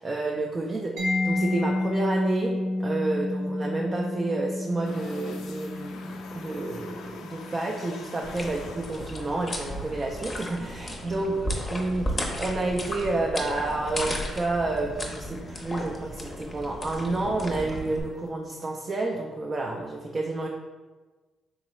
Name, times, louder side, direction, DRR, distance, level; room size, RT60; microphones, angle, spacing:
voice 1, 0.0-11.3 11.7-20.5, right 2 dB, 30° right, 0 dB, 0.4 m, -30 dB
Mallet percussion, 1.0-8.5, left 2 dB, 85° right, 0.7 m, -30 dB
sound 1, 4.8-18.3, left 4 dB, 80° left, 0.3 m, -48 dB
sound 2, 8.2-18.0, equal, 25° left, 0.6 m, -35 dB
3.7 x 3.0 x 3.0 m, 1.3 s
cardioid pair, 90°, 0 cm